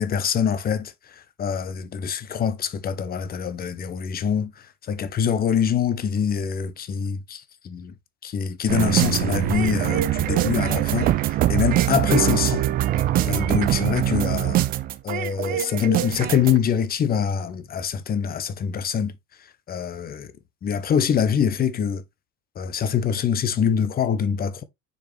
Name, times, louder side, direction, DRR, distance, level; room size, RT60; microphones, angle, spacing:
voice 1, 0.0-7.9 8.2-12.7 13.2-14.6 15.0-19.1 19.7-20.3 20.6-22.0 22.6-24.6, left 7 dB, 20° left, 0.7 m, -24 dB
sound 1, 8.7-16.6, right 13 dB, 20° right, 0.4 m, -23 dB
6.2 x 5.0 x 3.2 m
figure-of-eight pair, 80°, 47 cm